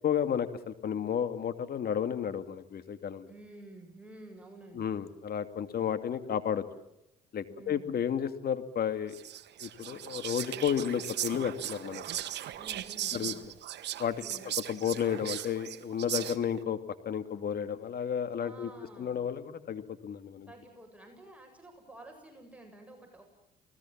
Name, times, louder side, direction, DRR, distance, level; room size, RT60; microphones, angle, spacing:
voice 1, 0.0-3.3 4.7-6.6 7.3-9.1 9.6-12.0 13.1-13.3 14.0-14.2 14.7-16.8 17.1-18.7 19.0-20.5, left 8 dB, 50° left, 10 dB, 2.3 m, -32 dB
voice 2, 3.3-5.1 7.5-8.0 12.6-13.4 14.2-14.5 18.4-19.2 20.5-23.2, right 2 dB, 5° right, 2 dB, 7.8 m, -51 dB
Whispering, 9.1-16.6, right 12 dB, 60° right, 1.4 m, -38 dB
29.0 x 19.5 x 7.4 m, 0.86 s
hypercardioid pair, 60°, 20 cm